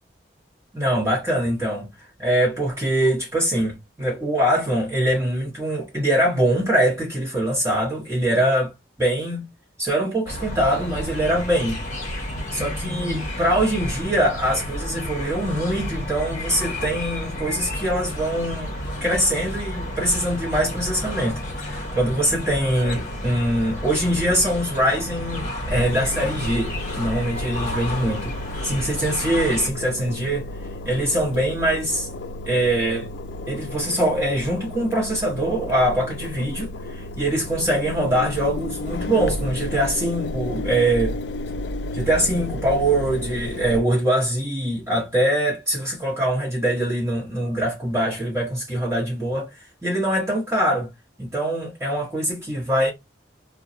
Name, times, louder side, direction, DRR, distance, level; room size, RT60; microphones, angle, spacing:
voice 1, 0.7-1.9 2.2-8.7 9.0-9.5 9.8-11.8 12.3-18.7 19.0-28.4 28.6-30.5 30.8-32.1 32.4-33.1 33.5-36.7 37.2-41.2 41.9-49.5 49.8-50.9 51.2-52.9, right 1 dB, 15° right, 1.0 m, -23 dB
sound 1, 10.3-29.7, left 1 dB, 40° left, 0.8 m, -31 dB
Engine, 25.7-43.8, left 1 dB, 70° left, 0.3 m, -33 dB
2.2 x 2.2 x 3.8 m
head